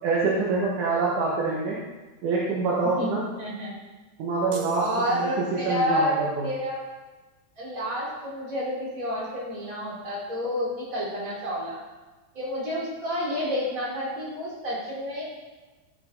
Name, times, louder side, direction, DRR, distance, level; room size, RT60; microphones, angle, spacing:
voice 1, 0.0-1.8 2.2-3.2 4.2-6.5, right 3 dB, 65° right, -4 dB, 2.1 m, -26 dB
voice 2, 3.4-3.7 4.8-6.8 7.6-11.8 12.3-15.2, equal, 20° right, -7 dB, 3.6 m, -29 dB
sound 1, 4.5-5.9, right 9 dB, 80° right, 3.4 m, -41 dB
14.5 x 8.2 x 4.0 m, 1.2 s
omnidirectional pair, 5.4 m